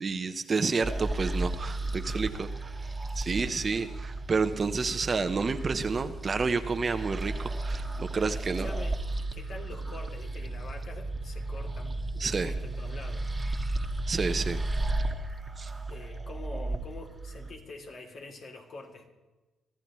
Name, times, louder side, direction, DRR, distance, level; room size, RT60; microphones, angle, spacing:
voice 1, 0.0-2.7 3.2-8.7 12.2-12.5 14.1-14.6 15.6-15.7, right 4 dB, 35° right, 9 dB, 0.9 m, -30 dB
sound 1, 0.8-17.5, right 2 dB, 20° right, 1.6 m, -34 dB
voice 2, 3.3-3.7 8.2-9.0 9.3-13.3 15.9-19.1, left 3 dB, 60° left, 1 dB, 3.0 m, -45 dB
24.5 x 14.0 x 3.2 m, 1.2 s
cardioid pair, 90°, 0 cm